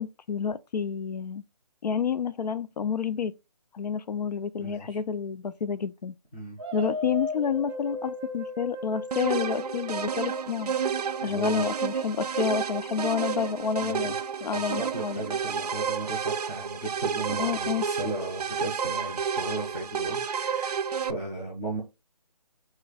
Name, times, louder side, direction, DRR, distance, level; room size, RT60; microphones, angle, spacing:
voice 1, 0.0-1.4 1.8-3.3 3.7-6.1 6.7-10.8 11.2-14.1 14.4-15.2 17.4-17.9, left 7 dB, 80° left, 0.4 m, -29 dB
voice 2, 4.6-5.0 6.3-6.6 11.2-11.6 13.8-14.2 14.5-21.8, right 2 dB, 15° left, 0.5 m, -36 dB
sound 1, 6.6-10.8, left 1 dB, 35° right, 0.7 m, -36 dB
sound 2, 9.1-21.1, right 6 dB, 70° right, 0.4 m, -31 dB
3.2 x 2.3 x 3.9 m
figure-of-eight pair, 155°, 21 cm